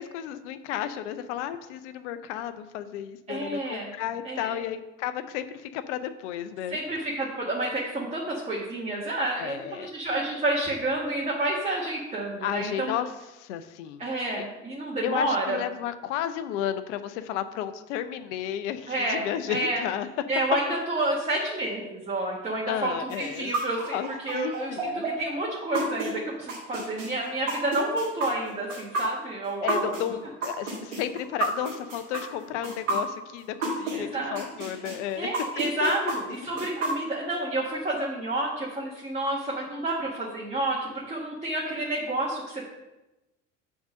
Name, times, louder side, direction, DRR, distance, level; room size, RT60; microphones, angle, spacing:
voice 1, 0.0-6.8 9.4-9.9 12.4-14.0 15.0-20.1 22.7-23.5 23.9-25.1 29.6-35.3 35.8-36.1, left 10 dB, 70° left, 12 dB, 0.7 m, -33 dB
voice 2, 3.3-3.9 4.2-4.6 6.7-12.9 14.0-15.6 18.9-19.8 20.3-24.0 24.2-30.0 33.9-34.4 35.2-42.7, right 1 dB, 20° right, -4 dB, 1.6 m, -29 dB
sound 1, 23.1-34.0 34.3-37.3, right 3 dB, 85° right, 1.9 m, -31 dB
7.1 x 3.7 x 6.3 m, 1.0 s
hypercardioid pair, 65°, 36 cm